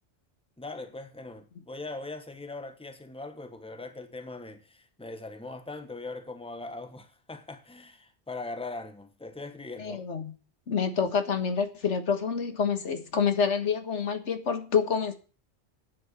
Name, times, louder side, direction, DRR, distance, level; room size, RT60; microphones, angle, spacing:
voice 1, 0.6-10.0, left 3 dB, 5° left, 1.1 m, -40 dB
voice 2, 9.8-10.3 10.7-15.1, left 6 dB, 90° left, 1.8 m, -27 dB
9.4 x 7.7 x 8.1 m
omnidirectional pair, 1.2 m